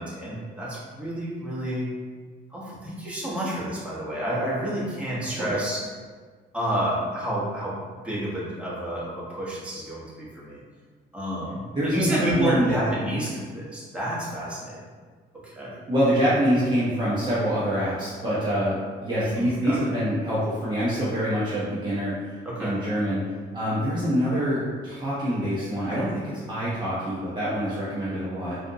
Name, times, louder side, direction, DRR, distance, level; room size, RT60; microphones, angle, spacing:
voice 1, 0.0-1.9 2.5-5.9 6.5-10.6 11.1-14.8 15.4-15.7 19.2-19.8 22.4-22.8, right 1 dB, 5° right, -8 dB, 1.2 m, -30 dB
voice 2, 11.7-12.8 15.9-22.1 22.6-23.2 23.5-28.6, equal, 25° right, -10 dB, 0.9 m, -25 dB
3.6 x 2.5 x 2.8 m, 1.5 s
cardioid pair, 90°, 20 cm